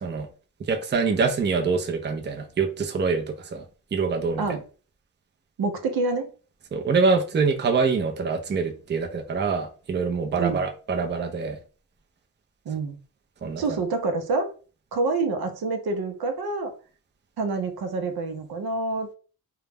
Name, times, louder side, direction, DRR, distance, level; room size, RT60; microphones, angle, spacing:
voice 1, 0.7-3.6 3.9-4.6 6.7-11.6 13.4-13.8, right 4 dB, 30° right, 4 dB, 0.4 m, -25 dB
voice 2, 5.6-6.3 10.4-10.7 12.7-13.0 13.6-14.5 14.9-16.7 17.4-19.1, right 3 dB, 80° right, 6 dB, 0.6 m, -27 dB
2.3 x 2.0 x 3.3 m, 0.38 s
wide cardioid pair, 90°, 36 cm